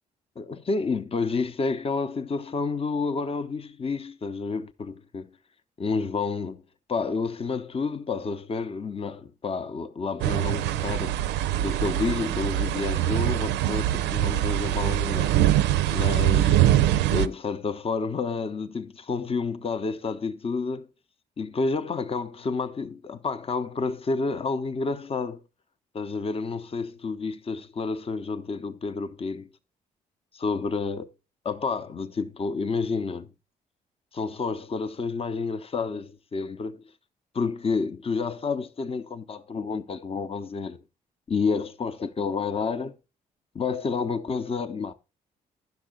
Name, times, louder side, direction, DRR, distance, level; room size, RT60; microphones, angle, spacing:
voice 1, 0.4-5.3 5.8-6.6 6.9-11.2 11.6-15.4 15.9-16.6 17.1-20.9 21.4-25.4 25.9-29.5 30.4-31.1 31.4-33.3 34.1-36.8 37.3-40.8 41.3-43.0 43.5-44.9, left 4 dB, 30° left, 0.8 m, -29 dB
sound 1, 10.2-17.3, right 13 dB, 65° right, 0.5 m, -23 dB
10.5 x 6.4 x 3.8 m
figure-of-eight pair, 40°, 20 cm